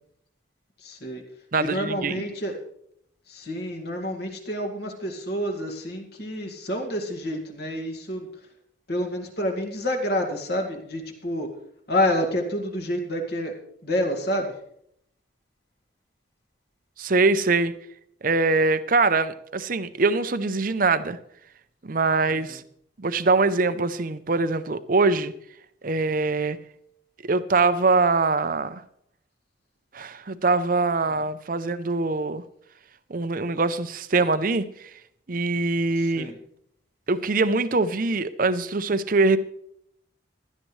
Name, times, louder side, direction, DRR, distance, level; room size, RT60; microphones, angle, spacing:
voice 1, 0.8-1.2 1.6-2.5 3.3-8.3 8.9-11.5 11.9-13.5 13.8-14.5 22.3-22.6 31.1-31.2 36.0-36.4, left 1 dB, 55° left, 3 dB, 2.1 m, -28 dB
voice 2, 1.5-2.2 17.0-17.7 18.2-21.2 21.8-22.6 23.0-25.3 25.8-26.6 27.2-28.8 29.9-32.4 33.1-34.7 35.3-36.3 37.1-39.4, right 3 dB, 45° right, 13 dB, 0.6 m, -23 dB
16.5 x 12.0 x 3.2 m, 0.71 s
head